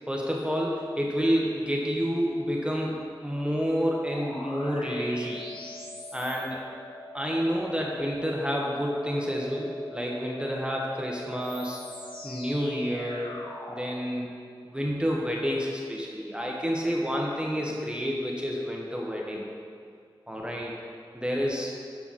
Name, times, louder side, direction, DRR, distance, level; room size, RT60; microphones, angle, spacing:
voice 1, 0.1-3.0 3.2-5.4 6.1-6.6 7.1-11.8 12.2-13.4 13.7-14.3 14.6-19.4 20.3-20.8 21.1-21.7, equal, 10° right, -2 dB, 1.1 m, -29 dB
sound 1, 4.0-13.9, left 1 dB, 65° left, 1.4 m, -42 dB
12.0 x 5.8 x 4.2 m, 2.3 s
wide cardioid pair, 90°, 9 cm